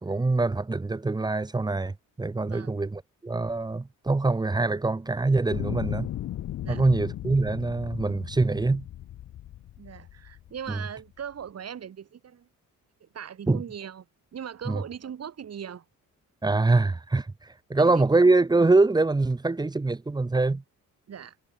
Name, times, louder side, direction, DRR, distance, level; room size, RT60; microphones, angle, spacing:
voice 1, 0.0-6.1 6.7-8.8 13.5-13.6 14.7-14.8 16.4-20.6, right 3 dB, 10° right, 1.0 m, -24 dB
sound 1, 5.5-10.8 11.5-11.6, left 12 dB, 55° left, 0.7 m, -36 dB
voice 2, 9.8-12.5 13.0-14.0 14.3-15.8 17.8-18.1 21.1-21.4, right 8 dB, 50° right, 6.3 m, -39 dB
cardioid pair, 160°, 33 cm